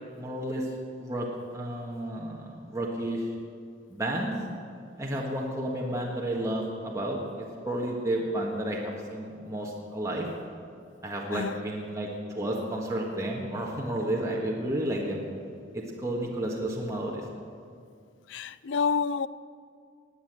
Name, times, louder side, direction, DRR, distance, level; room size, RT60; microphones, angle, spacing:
voice 1, 0.2-0.7 1.0-1.3 1.5-3.3 3.9-4.3 5.0-10.3 11.0-15.2 15.7-17.2, right 1 dB, 15° right, -3 dB, 1.7 m, -31 dB
voice 2, 18.3-19.3, left 5 dB, 75° left, 17 dB, 0.4 m, -28 dB
20.0 x 8.3 x 8.1 m, 2.2 s
head